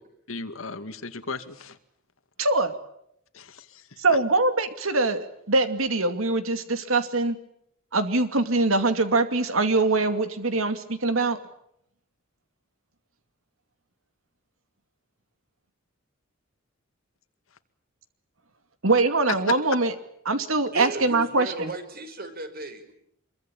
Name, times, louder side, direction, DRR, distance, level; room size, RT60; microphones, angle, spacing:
voice 1, 0.3-1.8 3.3-4.2 19.3-19.6, left 4 dB, 75° left, 9 dB, 2.2 m, -35 dB
voice 2, 2.4-2.7 4.0-7.4 7.9-11.4 18.8-19.9 20.2-21.7, right 3 dB, 80° right, 9 dB, 2.5 m, -23 dB
voice 3, 20.7-22.9, right 2 dB, 50° right, 7 dB, 5.6 m, -35 dB
26.0 x 23.0 x 9.1 m, 0.74 s
head